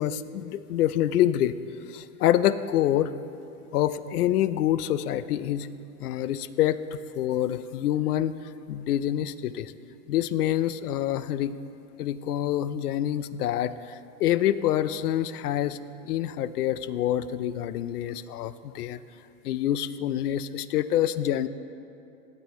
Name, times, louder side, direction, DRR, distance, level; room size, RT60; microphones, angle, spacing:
voice 1, 0.0-1.6 1.9-3.1 3.7-5.7 6.0-8.3 8.7-9.7 10.1-11.5 12.0-15.8 16.0-19.0 19.4-21.5, left 12 dB, 85° left, 15 dB, 0.6 m, -26 dB
17.0 x 8.9 x 3.1 m, 2.8 s
supercardioid pair, 170°, 44 cm